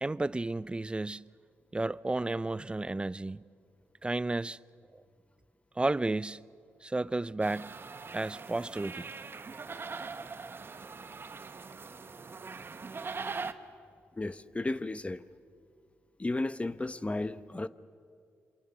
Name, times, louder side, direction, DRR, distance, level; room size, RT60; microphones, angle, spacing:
voice 1, 0.0-1.3 1.7-3.4 4.0-4.6 5.8-6.4 6.8-7.7 8.1-9.1, right 2 dB, 20° right, 0.5 m, -32 dB
sound 1, 7.4-13.5, right 4 dB, 40° right, 1.3 m, -42 dB
voice 2, 14.2-15.2 16.2-17.7, left 2 dB, 20° left, 0.8 m, -33 dB
28.0 x 24.5 x 6.9 m
supercardioid pair, 55°, 6 cm